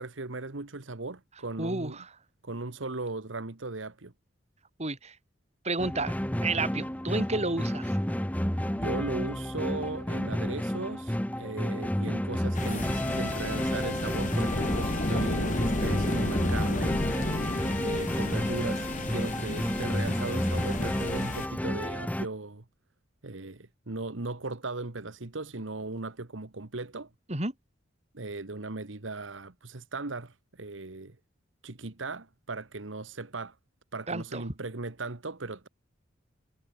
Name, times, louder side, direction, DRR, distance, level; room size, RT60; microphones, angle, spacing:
voice 1, 0.0-2.0 2.4-4.1 8.7-17.0 17.7-22.6 23.2-27.1 28.1-31.2 31.6-33.6 33.9-35.7, right 3 dB, 90° right, 1.5 m, -37 dB
voice 2, 1.6-2.1 4.8-5.2 5.6-6.1 6.4-8.0 27.3-27.5 34.1-34.4, right 2 dB, 35° right, 4.2 m, -31 dB
sound 1, 5.8-22.3, equal, 10° left, 1.3 m, -31 dB
sound 2, 12.5-21.5, left 1 dB, 40° left, 2.5 m, -32 dB
head